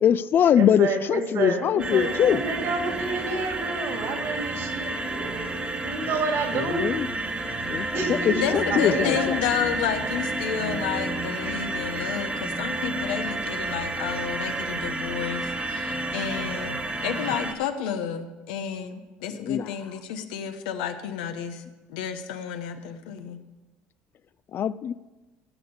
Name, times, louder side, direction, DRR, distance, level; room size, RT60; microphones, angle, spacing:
voice 1, 0.0-2.4 6.5-7.1 7.7-9.4 19.4-19.7 24.5-24.9, left 9 dB, 45° left, 17 dB, 0.4 m, -22 dB
voice 2, 0.6-6.8 7.9-8.2 8.7-9.2, right 4 dB, 65° right, 3 dB, 2.7 m, -30 dB
sound 1, 1.8-17.5, right 2 dB, 25° right, 1.6 m, -30 dB
voice 3, 8.3-21.6 21.9-23.4, left 8 dB, 90° left, 8 dB, 1.0 m, -31 dB
15.0 x 7.1 x 5.4 m, 1.2 s
supercardioid pair, 90°, 5 cm